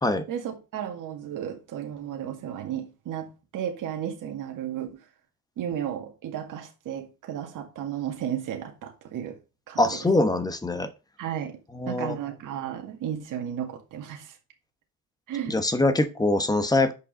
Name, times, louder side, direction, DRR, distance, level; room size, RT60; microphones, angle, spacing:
voice 1, 0.3-5.0 5.6-9.4 9.7-10.0 11.2-11.6 11.9-14.4 15.3-15.6, right 9 dB, 60° right, 2.0 m, -34 dB
voice 2, 9.8-10.9 11.7-12.2 15.5-16.9, left 2 dB, 10° left, 1.0 m, -23 dB
7.2 x 5.4 x 5.3 m
cardioid pair, 125°, 36 cm